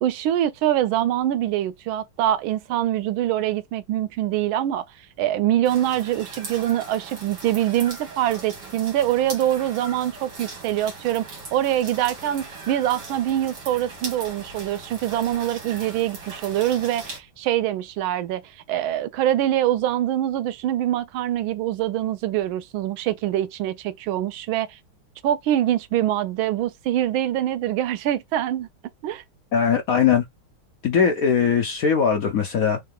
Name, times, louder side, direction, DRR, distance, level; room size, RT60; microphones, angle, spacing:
voice 1, 0.0-4.9 5.2-11.2 11.5-18.4 18.7-24.8 25.2-28.7 29.0-29.2, right 12 dB, 85° right, 1.4 m, -24 dB
sound 1, 5.6-17.2, right 3 dB, 60° right, 2.2 m, -39 dB
voice 2, 29.5-30.3 30.8-32.8, left 7 dB, 70° left, 0.8 m, -20 dB
3.7 x 3.2 x 3.7 m
omnidirectional pair, 2.2 m